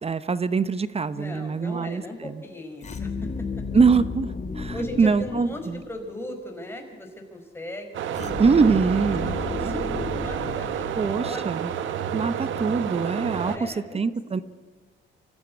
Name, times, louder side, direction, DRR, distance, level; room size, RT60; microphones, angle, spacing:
voice 1, 0.0-2.3 3.7-5.8 8.4-9.3 11.0-11.7 12.1-14.4, right 5 dB, 30° right, 15 dB, 0.9 m, -23 dB
voice 2, 1.1-3.3 4.7-8.0 9.1-11.8 13.2-14.0 14.4-14.5, left 1 dB, 10° left, 3 dB, 4.9 m, -38 dB
sound 1, 2.8-6.1 8.1-11.4, left 4 dB, 35° left, 2.2 m, -34 dB
sound 2, 7.9-13.6, right 9 dB, 75° right, 1.4 m, -30 dB
25.0 x 14.5 x 9.8 m, 1.4 s
cardioid pair, 90°, 20 cm